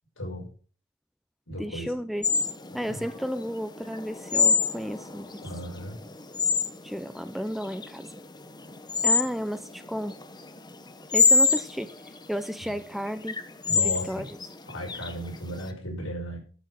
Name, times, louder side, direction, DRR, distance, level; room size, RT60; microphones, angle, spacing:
voice 1, 0.2-0.5 1.5-1.9 2.7-3.0 5.4-6.0 12.6-12.8 13.6-14.3 14.6-16.4, equal, 75° left, 6.1 m, -36 dB
voice 2, 1.6-2.3 2.7-5.3 6.8-8.1 9.0-10.2 11.1-11.9 12.3-13.4 13.7-14.3, equal, ahead, 0.6 m, -32 dB
sound 1, 2.2-15.6, left 4 dB, 20° left, 1.0 m, -27 dB
12.5 x 6.3 x 7.6 m
head